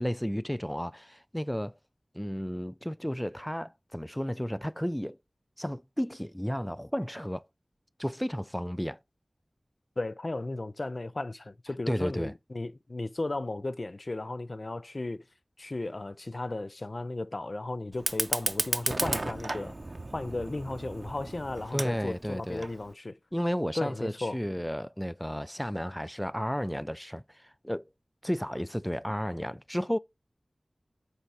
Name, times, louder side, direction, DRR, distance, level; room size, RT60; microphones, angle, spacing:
voice 1, 0.0-1.8 2.1-5.2 5.6-7.4 8.0-9.0 11.9-12.3 21.7-22.7 23.3-27.9 28.2-30.0, equal, 5° left, 0.3 m, -33 dB
voice 2, 10.0-15.2 15.6-19.8 20.1-23.2 23.8-24.4, left 2 dB, 55° left, 0.5 m, -35 dB
Fire, 17.9-22.9, right 2 dB, 50° right, 0.7 m, -34 dB
8.1 x 4.3 x 4.8 m
wide cardioid pair, 55°, 0 cm